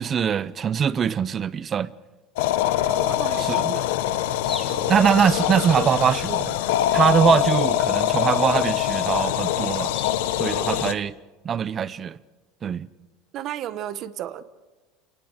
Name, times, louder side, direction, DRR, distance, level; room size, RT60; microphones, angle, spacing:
voice 1, 0.0-1.9 3.4-3.7 4.9-6.5 6.9-9.9 10.4-11.1 11.4-12.2 12.6-12.9, right 8 dB, 25° right, 0.7 m, -22 dB
sound 1, 2.4-10.9, left 13 dB, 85° left, 1.1 m, -23 dB
voice 2, 2.9-3.8 4.7-5.0 10.5-10.7 13.3-14.4, right 11 dB, 40° right, 1.1 m, -34 dB
sound 2, 4.4-5.0 6.6-6.7 7.1-7.2 8.2-10.2, left 3 dB, 15° left, 3.9 m, -40 dB
29.5 x 19.0 x 6.6 m
cardioid pair, 155°, 0 cm